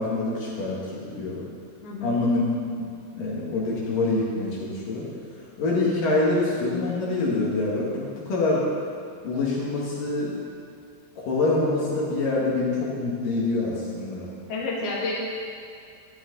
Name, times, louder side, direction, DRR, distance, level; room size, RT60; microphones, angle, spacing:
voice 1, 0.0-1.4 2.0-2.4 2.8-2.9 3.2-5.1 5.6-8.7 9.2-10.4 11.2-14.3, left 2 dB, 60° left, -6 dB, 3.1 m, -25 dB
voice 2, 1.8-2.2 14.5-15.1, left 3 dB, 45° left, -5 dB, 2.4 m, -30 dB
13.0 x 11.5 x 4.0 m, 2.4 s
omnidirectional pair, 4.7 m